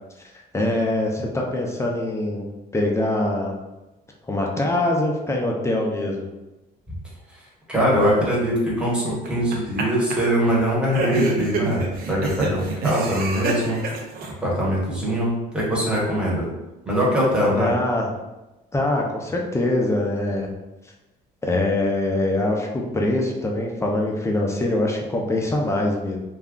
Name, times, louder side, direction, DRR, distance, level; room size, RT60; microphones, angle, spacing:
voice 1, 0.5-2.4 2.7-3.5 4.3-6.3 17.5-18.1 18.7-20.5 21.4-26.2, left 1 dB, 15° left, 0 dB, 0.5 m, -23 dB
voice 2, 7.7-13.8 14.4-16.4 16.8-17.7, equal, 5° right, -6 dB, 1.1 m, -22 dB
sound 1, 9.2-9.8 10.1-10.2 10.9-14.3, right 3 dB, 60° right, 0.6 m, -27 dB
2.4 x 2.2 x 3.6 m, 1.0 s
cardioid pair, 110°, 17 cm